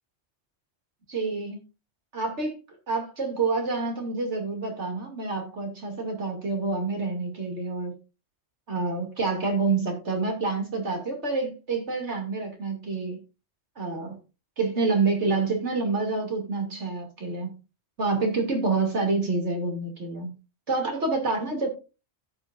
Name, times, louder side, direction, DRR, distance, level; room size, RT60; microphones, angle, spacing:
voice 1, 1.1-1.6 2.1-2.6 2.9-7.9 8.7-13.2 13.8-14.2 14.6-17.5 18.0-20.3 20.7-21.7, right 3 dB, 75° right, 3.0 m, -27 dB
16.0 x 6.1 x 2.5 m
omnidirectional pair, 1.2 m